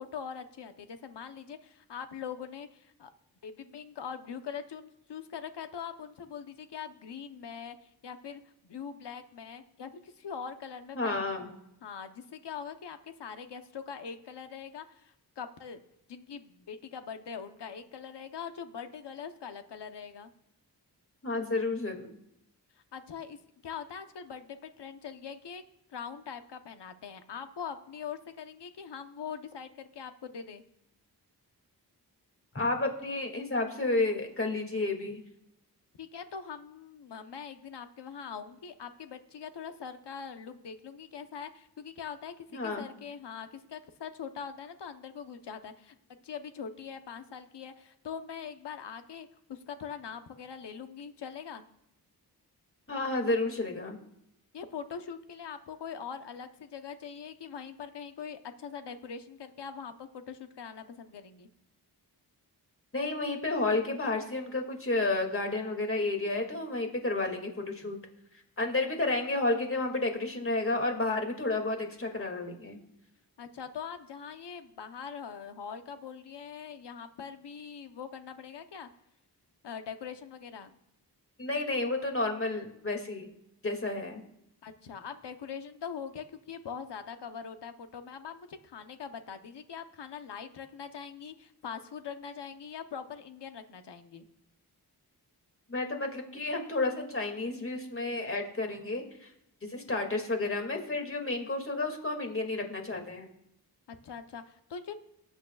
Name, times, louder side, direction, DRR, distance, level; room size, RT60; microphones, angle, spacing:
voice 1, 0.0-3.1 3.4-11.3 11.8-15.8 16.1-20.3 22.9-25.6 25.9-30.6 36.0-45.9 46.2-51.6 54.5-61.5 73.4-78.9 79.6-80.7 84.6-94.3 103.9-104.9, left 7 dB, 85° left, 8 dB, 1.0 m, -42 dB
voice 2, 10.9-11.5 21.2-22.2 32.5-35.2 42.5-42.9 52.9-54.0 62.9-68.0 68.6-72.8 81.4-83.3 83.6-84.2 95.7-99.3 99.6-103.3, left 2 dB, 30° left, 3 dB, 2.3 m, -31 dB
19.0 x 9.2 x 2.4 m, 0.81 s
cardioid pair, 70°, 40 cm